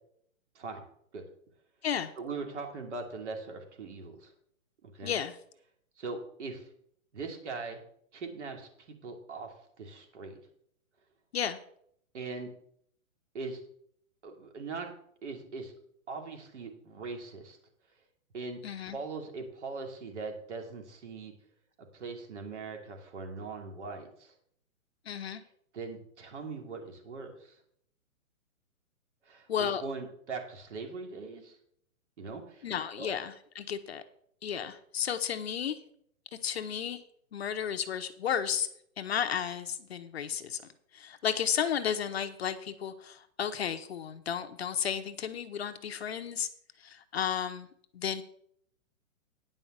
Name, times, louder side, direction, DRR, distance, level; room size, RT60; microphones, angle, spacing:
voice 1, 2.2-4.3 4.8-5.1 6.0-6.7 7.1-7.8 8.1-10.4 12.1-12.5 13.3-13.6 14.2-14.9 15.2-15.7 16.1-17.6 18.3-21.3 21.9-24.3 25.7-27.6 29.2-31.6 32.2-32.7 33.0-33.1, right 4 dB, 55° right, 4 dB, 2.8 m, -41 dB
voice 2, 5.0-5.4 11.3-11.6 18.6-19.0 25.1-25.4 29.5-29.8 32.6-34.0 34.4-35.8 36.4-37.0 37.3-38.7 39.0-40.6 40.9-46.5 46.8-47.7 47.9-48.2, left 8 dB, 50° left, 9 dB, 0.9 m, -33 dB
9.8 x 5.5 x 7.3 m, 0.67 s
hypercardioid pair, 165°, 41 cm